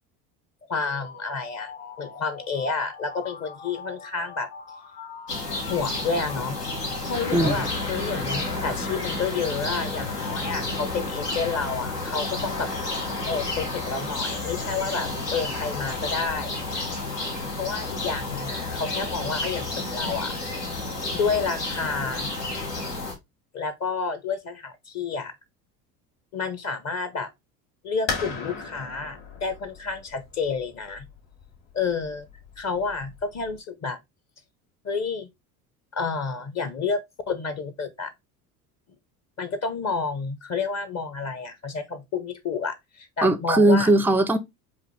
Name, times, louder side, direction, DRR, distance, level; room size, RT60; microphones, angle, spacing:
voice 1, 0.7-1.7 2.0-4.5 5.6-6.6 7.1-12.7 13.3-16.6 17.6-20.3 21.1-22.3 23.5-25.3 26.3-27.3 27.8-31.1 31.7-32.3 32.6-34.0 34.8-35.3 35.9-38.1 39.4-43.9, left 5 dB, 35° left, 0.8 m, -30 dB
sound 1, 0.8-7.6, left 5 dB, 70° left, 2.6 m, -43 dB
sound 2, 5.3-23.1, left 2 dB, 90° left, 1.3 m, -31 dB
voice 2, 7.3-7.6 43.2-44.4, right 2 dB, 5° right, 0.3 m, -19 dB
sound 3, 28.1-33.6, left 4 dB, 55° left, 2.4 m, -37 dB
5.0 x 2.6 x 3.1 m
hypercardioid pair, 70°, 46 cm